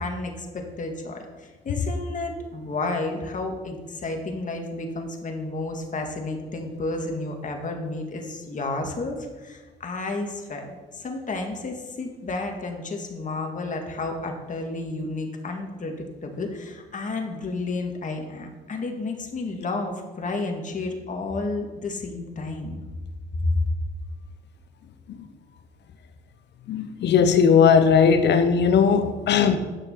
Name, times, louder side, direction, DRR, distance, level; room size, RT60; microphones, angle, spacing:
voice 1, 0.0-22.8 23.4-23.6, left 2 dB, 40° left, 3 dB, 2.0 m, -31 dB
voice 2, 26.7-29.6, left 6 dB, 60° left, 10 dB, 1.1 m, -18 dB
8.9 x 6.5 x 5.8 m, 1.3 s
supercardioid pair, 75°, 20 cm